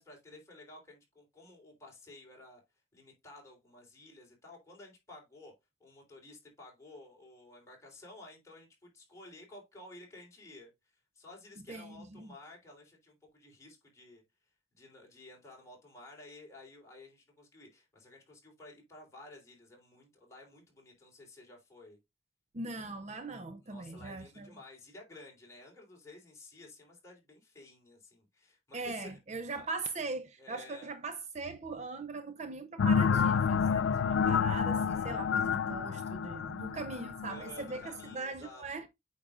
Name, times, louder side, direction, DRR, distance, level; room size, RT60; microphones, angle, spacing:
voice 1, 0.0-2.6 2.9-5.5 5.8-14.2 14.7-22.0 23.6-29.2 29.5-29.7 30.4-30.9 37.3-38.6, left 2 dB, 15° left, 3.4 m, -53 dB
voice 2, 11.7-12.3 22.5-24.5 28.7-38.9, right 3 dB, 35° right, 0.6 m, -40 dB
sound 1, 32.8-38.1, left 6 dB, 65° left, 0.3 m, -29 dB
8.7 x 5.7 x 2.4 m
head